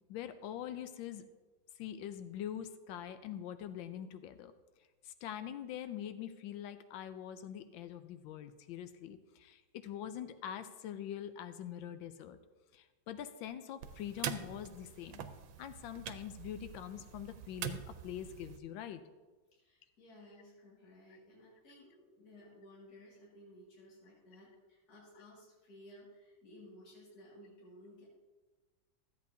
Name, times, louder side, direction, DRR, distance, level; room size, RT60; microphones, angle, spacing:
voice 1, 0.1-1.2 1.8-4.5 5.0-12.4 12.7-15.3 15.6-19.0, left 10 dB, 80° left, 10 dB, 1.3 m, -44 dB
sound 1, 13.8-18.6, right 10 dB, 85° right, 1.4 m, -44 dB
voice 2, 19.5-28.1, left 1 dB, 55° left, -6 dB, 2.6 m, -57 dB
13.5 x 8.2 x 2.7 m, 1.3 s
omnidirectional pair, 2.1 m